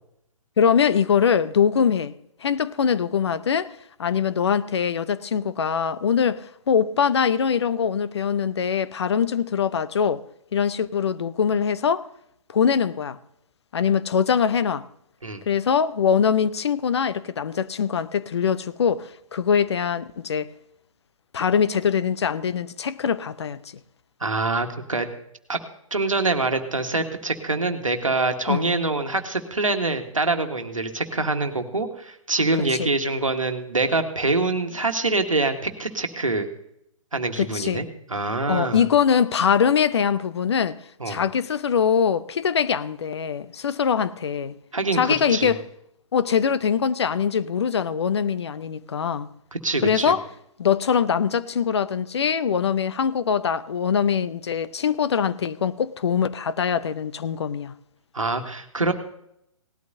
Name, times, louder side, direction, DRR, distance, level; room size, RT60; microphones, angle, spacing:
voice 1, 0.6-2.1 2.4-3.7 4.0-10.2 10.5-12.1 12.5-13.2 13.7-14.9 15.5-20.5 21.3-23.6 28.5-28.6 32.8-32.9 37.4-37.8 38.5-40.8 41.1-44.5 44.9-45.6 46.1-49.3 49.8-50.2 50.6-57.7, left 7 dB, 55° left, 0.6 m, -22 dB
voice 2, 24.2-25.1 25.5-25.6 25.9-36.5 37.1-38.8 41.0-41.2 44.7-45.5 49.5-50.2 58.1-58.9, right 3 dB, 80° right, 1.4 m, -25 dB
18.5 x 12.5 x 2.7 m
figure-of-eight pair, 125°, 17 cm